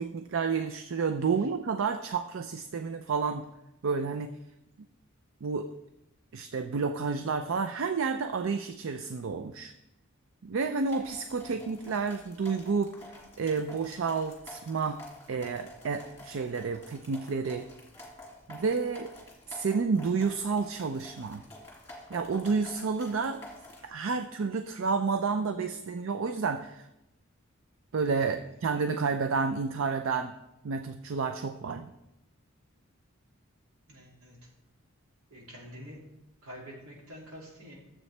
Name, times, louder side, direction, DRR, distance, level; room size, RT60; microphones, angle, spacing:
voice 1, 0.0-3.5 3.8-4.3 5.4-5.7 6.3-9.7 10.4-12.9 13.4-15.0 15.3-17.7 18.5-19.1 19.5-21.4 22.1-23.4 23.8-26.9 27.9-30.3 30.6-31.9, right 5 dB, 65° right, 8 dB, 0.4 m, -30 dB
sound 1, 10.9-23.9, left 1 dB, 10° left, 2.1 m, -49 dB
voice 2, 33.9-34.5 35.3-36.1 36.4-37.8, equal, 85° right, -2 dB, 2.6 m, -47 dB
12.0 x 7.5 x 3.3 m, 0.89 s
head